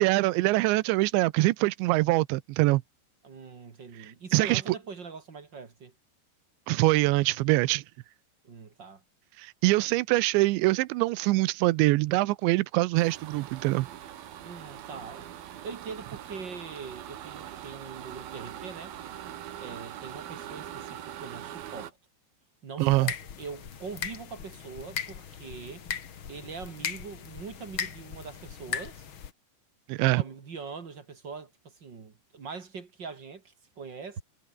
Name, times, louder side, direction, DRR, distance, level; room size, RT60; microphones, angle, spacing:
voice 1, 0.0-2.8 4.3-4.6 6.7-7.8 9.4-13.9 22.8-23.1 29.9-30.2, right 20 dB, 80° right, 3.0 m, -24 dB
voice 2, 3.2-5.9 8.4-9.0 14.4-18.9 19.6-22.0 22.6-25.8 26.3-29.0 30.2-34.2, right 5 dB, 40° right, 1.7 m, -42 dB
sound 1, 13.0-21.9, right 11 dB, 60° right, 3.3 m, -42 dB
sound 2, 22.8-29.3, left 8 dB, 75° left, 1.1 m, -38 dB
omnidirectional pair, 5.3 m